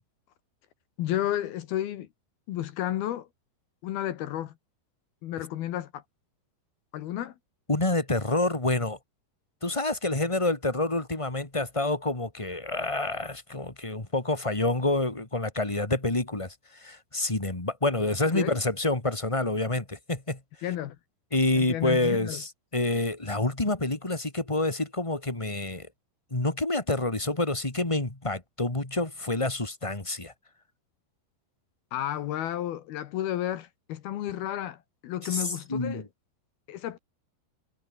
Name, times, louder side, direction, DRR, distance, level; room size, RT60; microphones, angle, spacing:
voice 1, 1.0-2.1 2.5-3.3 3.8-4.5 5.2-6.0 6.9-7.4 18.3-18.6 20.6-21.0 21.5-22.4 31.9-36.1 36.7-37.0, left 12 dB, 70° left, 2.9 m, -32 dB
voice 2, 7.7-9.0 9.6-20.4 21.3-25.9 26.3-30.3 35.3-36.0, left 2 dB, 15° left, 1.3 m, -28 dB
omnidirectional pair, 5.0 m